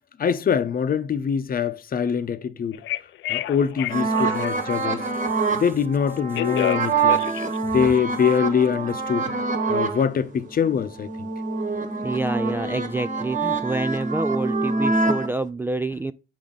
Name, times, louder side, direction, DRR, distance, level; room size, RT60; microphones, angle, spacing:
voice 1, 0.2-2.8 3.3-5.0 5.5-7.2 7.6-9.3 9.7-11.3, left 7 dB, 45° left, 0.8 m, -23 dB
Telephone, 2.7-5.2 6.0-8.4, left 14 dB, 75° left, 0.4 m, -30 dB
sound 1, 3.9-10.0 10.5-15.3, right 4 dB, 40° right, 1.6 m, -25 dB
voice 2, 12.0-16.1, right 2 dB, 10° right, 0.3 m, -27 dB
7.1 x 4.7 x 3.8 m
cardioid pair, 90°, 20 cm